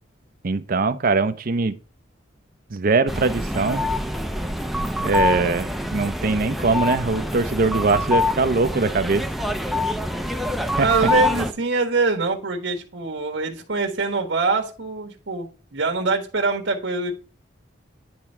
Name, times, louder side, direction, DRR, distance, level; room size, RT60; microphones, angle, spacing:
voice 1, 0.4-1.8 2.7-3.9 5.0-9.2 10.8-10.9, right 3 dB, 50° right, 0.6 m, -22 dB
sound 1, 3.1-11.5, left 2 dB, ahead, 0.5 m, -25 dB
voice 2, 10.8-17.1, right 4 dB, 80° right, 1.4 m, -24 dB
10.5 x 3.6 x 4.4 m
head